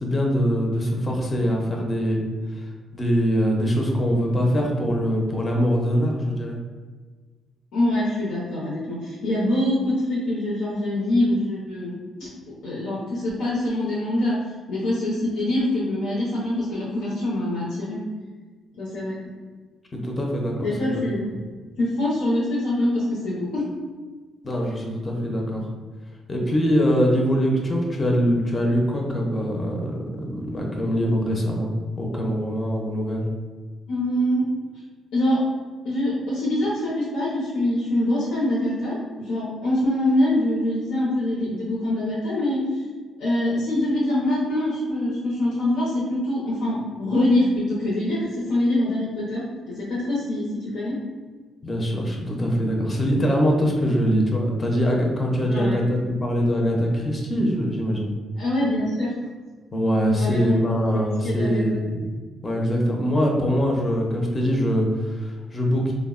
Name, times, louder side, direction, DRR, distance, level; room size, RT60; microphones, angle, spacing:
voice 1, 0.0-2.3 2.5-2.7 2.9-6.6 19.9-21.0 24.4-25.7 26.3-31.7 32.0-33.3 51.6-58.1 59.7-61.9 62.4-65.9, equal, 25° left, -1 dB, 0.5 m, -23 dB
voice 2, 7.7-12.3 12.6-14.4 14.7-18.0 18.8-19.1 20.6-21.3 21.8-23.6 33.9-34.5 35.1-35.4 35.8-42.8 43.2-49.4 49.8-51.0 55.5-55.8 58.4-59.1 60.1-60.6 60.9-61.6, left 1 dB, 85° left, -7 dB, 0.6 m, -24 dB
3.4 x 2.0 x 2.3 m, 1.4 s
cardioid pair, 90°, 0 cm